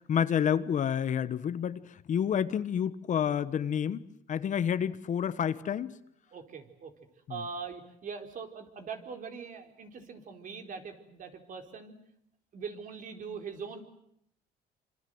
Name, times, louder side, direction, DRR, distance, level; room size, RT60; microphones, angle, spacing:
voice 1, 0.0-5.9 7.3-7.4, left 8 dB, 45° left, 14 dB, 1.2 m, -29 dB
voice 2, 6.3-6.9 7.3-12.0 12.5-13.8, right 5 dB, 50° right, 6 dB, 4.2 m, -42 dB
26.5 x 26.0 x 7.9 m, 0.72 s
cardioid pair, 110°, 17 cm